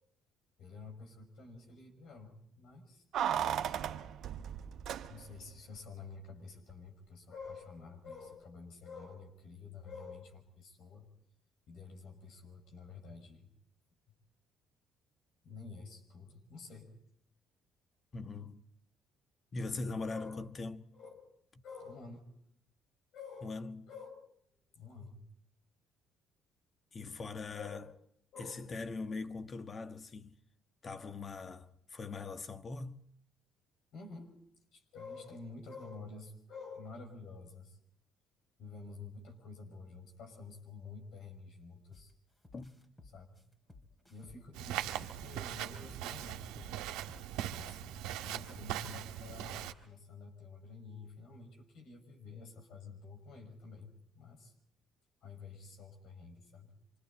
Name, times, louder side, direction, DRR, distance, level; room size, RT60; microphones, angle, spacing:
voice 1, 0.6-3.0 5.1-11.1 11.7-13.5 15.4-16.9 20.1-20.3 20.9-21.3 21.6-22.3 23.1-23.6 23.9-24.1 24.7-25.2 27.5-27.8 28.3-28.7 33.9-34.4 34.7-37.8 38.6-42.1 43.1-43.4 43.7-46.8 47.5-54.5 55.2-56.7, left 4 dB, 70° left, 5.9 m, -50 dB
Keys jangling, 3.1-5.5 5.8-5.9, right 9 dB, 65° right, 1.2 m, -36 dB
voice 2, 18.1-18.6 19.5-20.8 23.4-23.9 26.9-27.8 28.4-30.4 30.8-33.0 42.5-42.7, left 3 dB, 40° left, 1.3 m, -41 dB
sound 1, 41.9-42.1 42.4-45.0 45.3-47.5, left 2 dB, 15° left, 3.3 m, -57 dB
Walk footsteps, 44.5-49.7, right 12 dB, 85° right, 1.5 m, -40 dB
26.0 x 26.0 x 4.2 m
supercardioid pair, 70°, 0 cm